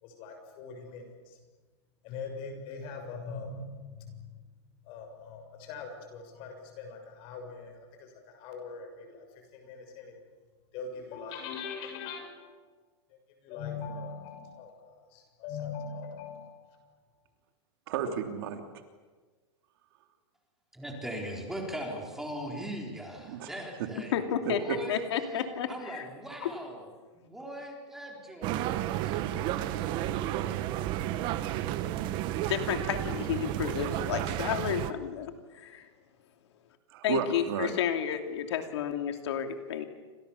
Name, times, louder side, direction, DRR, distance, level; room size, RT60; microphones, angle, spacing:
voice 1, 0.0-1.4 2.0-4.3 4.8-10.1 10.7-12.6 13.1-17.0, left 5 dB, 35° left, 5 dB, 6.8 m, -42 dB
voice 2, 17.9-18.6 23.2-23.5 24.4-24.8 30.3-30.7 36.9-37.7, right 9 dB, 55° right, 5 dB, 3.2 m, -33 dB
voice 3, 20.7-24.2 24.4-25.0 25.3-25.4 25.7-26.9 27.1-28.6, right 1 dB, 5° right, 0 dB, 3.9 m, -39 dB
voice 4, 24.1-24.6 24.9-26.1 26.4-26.5 32.5-35.9 37.0-39.8, left 9 dB, 65° left, 6 dB, 2.8 m, -31 dB
sound 1, 28.4-34.9, right 13 dB, 30° right, 1.3 m, -32 dB
29.5 x 26.5 x 7.1 m, 1.4 s
supercardioid pair, 165°, 15 cm